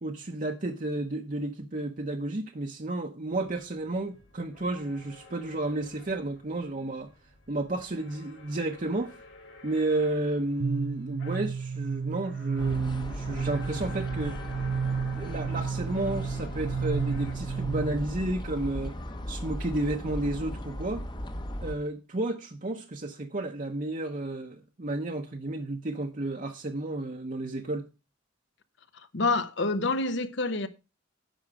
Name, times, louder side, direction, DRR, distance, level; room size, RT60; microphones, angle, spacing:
voice 1, 0.0-7.1 7.5-9.1 9.6-14.4 15.2-18.9 19.3-21.0 21.6-27.9, right 2 dB, 45° right, 0.8 m, -32 dB
sound 1, 3.3-17.8, left 3 dB, 85° left, 3.7 m, -51 dB
sound 2, 10.6-18.2, right 6 dB, 65° right, 0.4 m, -32 dB
sound 3, 12.6-21.8, equal, 25° left, 0.9 m, -37 dB
voice 2, 29.1-30.7, left 3 dB, 65° left, 1.0 m, -27 dB
10.5 x 6.4 x 4.8 m
head